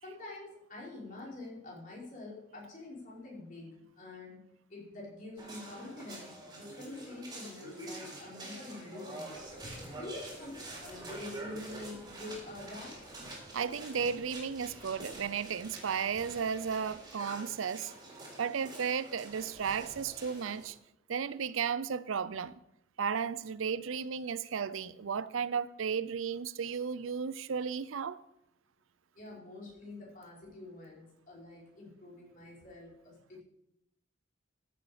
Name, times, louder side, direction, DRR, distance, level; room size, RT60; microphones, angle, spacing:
voice 1, 0.0-4.4 4.7-9.3 9.9-13.0 29.1-33.4, left 2 dB, 40° left, 4.6 m, -46 dB
sound 1, 5.4-20.7, right 1 dB, 20° right, 3.8 m, -47 dB
sound 2, 9.3-17.0, equal, 25° left, 5.7 m, -53 dB
voice 2, 13.5-17.9 18.4-20.8 21.1-22.6 23.0-28.2, right 6 dB, 90° right, 0.5 m, -34 dB
14.5 x 7.9 x 5.0 m
head